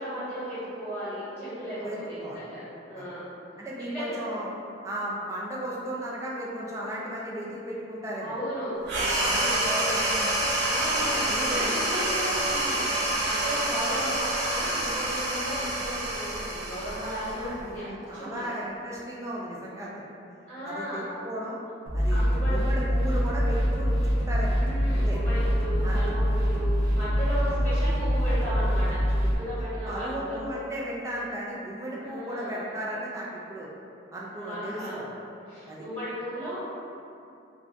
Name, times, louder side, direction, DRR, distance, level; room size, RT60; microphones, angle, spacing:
voice 1, 0.0-3.3 3.8-4.3 8.2-9.7 10.6-17.9 18.1-18.5 20.5-21.0 22.1-22.6 24.6-30.4 32.0-32.7 34.4-35.0 35.5-36.6, equal, 10° left, -14 dB, 1.4 m, -35 dB
voice 2, 1.8-2.4 2.9-3.0 3.6-4.5 4.8-8.4 9.2-10.5 11.0-11.8 13.5-13.9 17.1-20.0 20.3-20.4 20.6-21.6 21.9-24.6 24.9-25.2 25.8-26.0 27.6-27.7 29.9-33.7 34.1-35.1 35.6-35.9, right 1 dB, 15° right, -5 dB, 0.4 m, -35 dB
sound 1, 8.9-17.7, right 1 dB, 65° right, 0.5 m, -27 dB
sound 2, 21.9-29.4, equal, 90° right, 0.8 m, -24 dB
2.5 x 2.2 x 3.6 m, 2.7 s
head